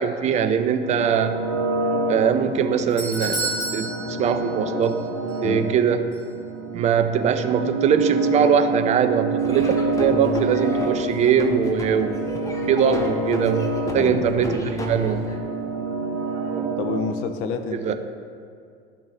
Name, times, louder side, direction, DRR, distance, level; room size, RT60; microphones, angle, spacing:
voice 1, 0.0-1.4 2.1-3.9 4.2-4.9 5.4-6.0 6.7-12.2 12.7-15.3 17.7-17.9, right 7 dB, 25° right, 8 dB, 0.4 m, -21 dB
sound 1, 0.8-17.0, right 3 dB, 75° right, 1.2 m, -27 dB
Doorbell, 2.5-5.0 5.3-5.4 6.1-6.2, right 2 dB, 85° left, 1.4 m, -30 dB
Laughter / Drum, 9.4-15.4, left 1 dB, 10° left, 0.9 m, -33 dB
voice 2, 13.9-14.5 16.8-17.9, left 5 dB, 45° left, 7 dB, 0.6 m, -29 dB
11.0 x 3.9 x 4.0 m, 2.3 s
figure-of-eight pair, 70°, 31 cm